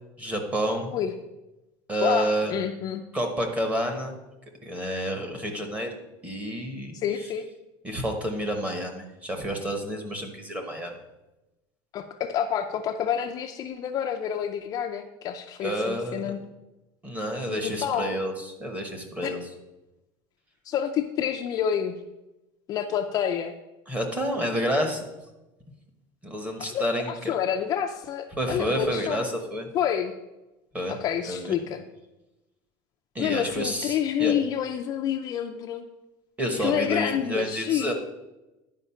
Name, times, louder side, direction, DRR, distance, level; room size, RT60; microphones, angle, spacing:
voice 1, 0.2-1.0 1.9-2.5 3.1-4.2 4.6-5.9 6.2-6.9 7.8-10.9 15.6-16.2 17.0-19.4 23.9-25.1 26.2-27.3 28.4-29.7 30.7-31.0 31.3-31.5 33.1-34.3 36.4-37.9, equal, 10° right, 4 dB, 1.1 m, -29 dB
voice 2, 2.0-3.0 6.9-7.5 11.9-16.4 17.5-18.1 19.2-19.4 20.6-22.0 22.7-23.5 26.6-29.3 29.7-30.1 30.9-31.8 33.2-35.8 36.6-37.9, left 9 dB, 30° left, 4 dB, 0.4 m, -28 dB
10.0 x 5.0 x 5.6 m, 1.0 s
cardioid pair, 170°, 12 cm